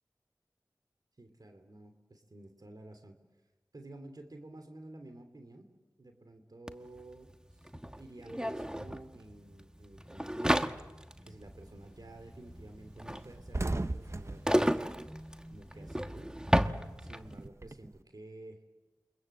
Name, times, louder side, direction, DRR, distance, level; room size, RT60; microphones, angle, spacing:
voice 1, 1.2-3.2 3.7-5.7 6.0-7.3 7.6-10.7 11.2-14.8 15.5-16.3 17.0-18.6, right 2 dB, 65° right, 6 dB, 3.0 m, -51 dB
sound 1, 6.7-6.8 7.0-17.4, equal, 10° right, 1.3 m, -33 dB
sound 2, 11.4-11.8 12.2-12.3 12.6-12.7 13.0-16.0 16.3-18.0, right 2 dB, 40° right, 0.9 m, -38 dB
28.5 x 24.5 x 7.9 m, 1.2 s
wide cardioid pair, 40°, 7 cm